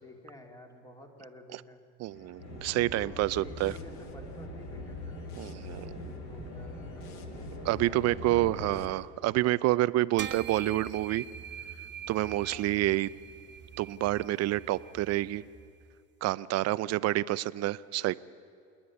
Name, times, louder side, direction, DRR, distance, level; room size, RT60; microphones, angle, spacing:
voice 1, 0.0-1.9 2.7-5.2 5.7-7.1 7.8-8.5 10.2-10.3 12.4-12.8 16.6-17.0, left 1 dB, 10° left, 4 dB, 2.6 m, -51 dB
sound 1, 2.0-8.9, left 6 dB, 65° left, 2.1 m, -54 dB
voice 2, 2.0-3.7 5.4-6.0 7.6-11.3 12.1-13.1 13.8-15.4 16.2-18.2, right 16 dB, 45° right, 19 dB, 0.6 m, -28 dB
sound 2, 2.4-8.9, left 1 dB, 45° left, 6.7 m, -42 dB
sound 3, 10.2-15.8, right 7 dB, 30° right, 1.0 m, -44 dB
27.5 x 10.5 x 9.9 m, 2.5 s
supercardioid pair, 110°, 35 cm